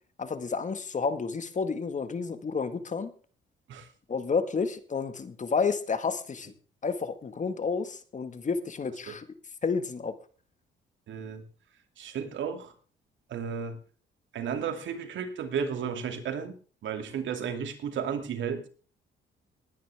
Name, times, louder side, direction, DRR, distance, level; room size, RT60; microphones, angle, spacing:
voice 1, 0.2-3.1 4.1-6.5 6.8-9.3 9.6-10.2, left 5 dB, 40° left, 11 dB, 1.7 m, -30 dB
voice 2, 11.1-11.4 12.0-12.7 13.3-13.8 14.3-16.5 16.8-18.6, right 7 dB, 70° right, 7 dB, 2.5 m, -33 dB
19.5 x 10.5 x 3.5 m, 0.40 s
cardioid pair, 90°, 20 cm